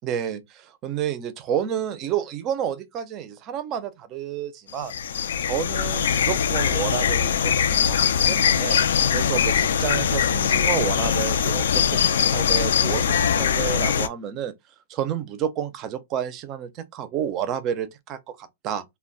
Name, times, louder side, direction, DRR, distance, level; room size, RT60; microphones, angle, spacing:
voice 1, 0.0-4.9 5.4-8.8 9.1-14.5 14.9-18.8, right 9 dB, 30° right, 0.5 m, -30 dB
sound 1, 4.7-14.1, left 8 dB, 80° left, 0.4 m, -22 dB
2.2 x 2.1 x 3.7 m
hypercardioid pair, 145°, 0 cm